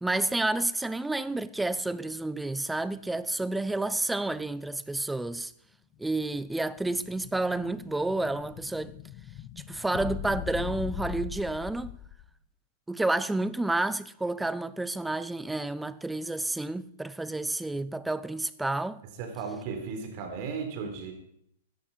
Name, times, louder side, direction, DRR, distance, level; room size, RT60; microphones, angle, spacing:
voice 1, 0.0-5.5 6.0-8.9 9.7-12.0 12.9-19.0, right 2 dB, 5° right, 0.6 m, -30 dB
Explosion, 6.5-12.3, left 13 dB, 40° left, 0.8 m, -40 dB
voice 2, 19.2-21.1, right 5 dB, 50° right, 3.9 m, -35 dB
16.0 x 12.5 x 4.5 m
hypercardioid pair, 125°, 0 cm